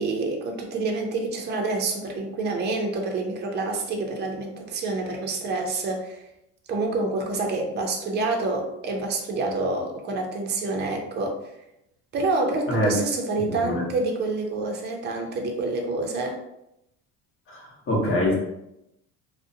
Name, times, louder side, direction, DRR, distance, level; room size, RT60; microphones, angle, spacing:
voice 1, 0.0-6.2 6.7-11.4 12.1-16.4, right 3 dB, 35° right, 1 dB, 0.5 m, -27 dB
voice 2, 13.4-13.8 17.5-18.3, left 1 dB, 40° left, -3 dB, 0.9 m, -25 dB
2.5 x 2.1 x 2.6 m, 0.84 s
cardioid pair, 120°, 31 cm